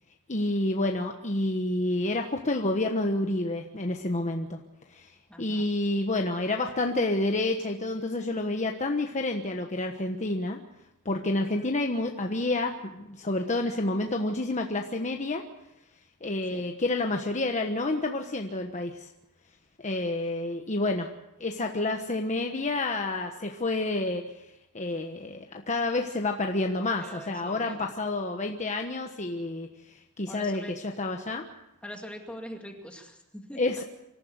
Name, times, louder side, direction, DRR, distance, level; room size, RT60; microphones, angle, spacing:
voice 1, 0.3-4.6 4.9-5.1 5.4-10.6 11.0-15.4 16.2-19.1 19.8-21.1 21.4-24.4 24.7-29.7 30.2-31.4 33.6-33.8, left 2 dB, 30° left, 3 dB, 1.3 m, -29 dB
voice 2, 5.3-5.6 16.5-16.6 27.0-27.8 30.3-30.7 31.8-33.8, equal, 5° left, 2 dB, 2.2 m, -43 dB
25.5 x 14.0 x 8.1 m, 0.90 s
head